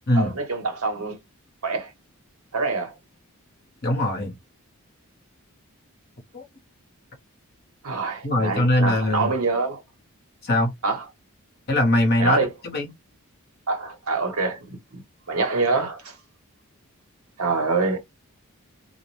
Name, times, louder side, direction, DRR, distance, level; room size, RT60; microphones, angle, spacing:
voice 1, 0.1-1.2 1.6-1.9 2.5-3.0 7.8-9.8 10.8-11.0 12.2-12.5 13.7-15.0 15.3-16.1 17.4-18.0, right 4 dB, 75° right, 1.0 m, -25 dB
voice 2, 3.8-4.3 6.3-6.4 8.2-9.3 10.4-10.7 11.7-12.9, left 1 dB, 45° left, 0.8 m, -21 dB
2.3 x 2.1 x 3.0 m
head